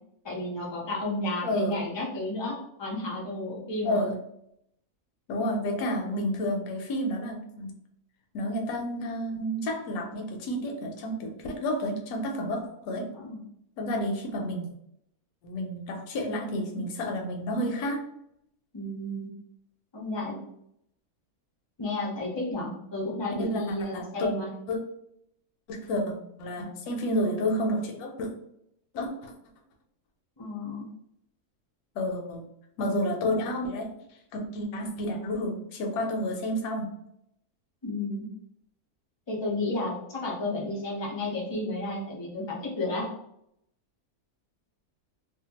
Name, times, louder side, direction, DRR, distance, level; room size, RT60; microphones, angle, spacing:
voice 1, 0.2-4.1 13.1-13.4 18.7-19.3 19.9-20.4 21.8-24.5 30.4-30.9 37.8-38.3 39.3-43.1, left 2 dB, 40° left, -4 dB, 0.4 m, -32 dB
voice 2, 1.4-1.8 3.8-4.1 5.3-7.7 8.3-13.1 13.8-14.7 15.4-18.0 23.4-23.6 23.9-24.3 24.7-24.8 25.7-26.1 26.4-28.3 28.9-29.3 32.0-32.4 32.8-33.9 34.3-36.9, left 1 dB, 75° left, 1 dB, 1.1 m, -30 dB
2.8 x 2.2 x 2.8 m, 0.75 s
omnidirectional pair, 1.6 m